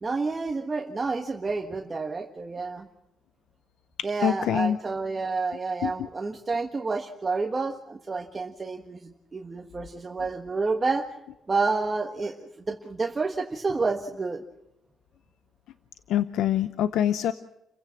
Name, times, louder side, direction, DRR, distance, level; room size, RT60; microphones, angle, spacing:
voice 1, 0.0-2.9 4.0-9.0 9.3-11.1 11.5-14.4, right 3 dB, 30° right, 3 dB, 1.5 m, -29 dB
voice 2, 4.2-4.8 5.8-6.1 16.1-17.3, left 11 dB, 85° left, 12 dB, 0.7 m, -25 dB
29.5 x 16.0 x 6.1 m, 0.88 s
cardioid pair, 105°, 0 cm